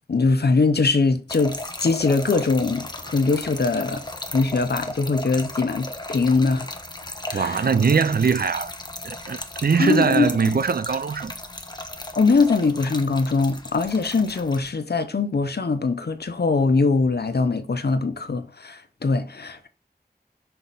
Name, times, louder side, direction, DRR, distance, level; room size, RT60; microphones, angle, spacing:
voice 1, 0.1-4.0 4.3-6.7 7.3-7.7 9.8-10.6 12.2-19.7, left 4 dB, 90° left, 0.7 m, -22 dB
Trickle dribble / Fill (with liquid), 1.3-14.7, left 1 dB, 25° left, 0.8 m, -36 dB
voice 2, 7.3-8.7 9.0-11.3, right 5 dB, 70° right, 0.4 m, -21 dB
5.8 x 4.2 x 3.9 m
wide cardioid pair, 55°, 16 cm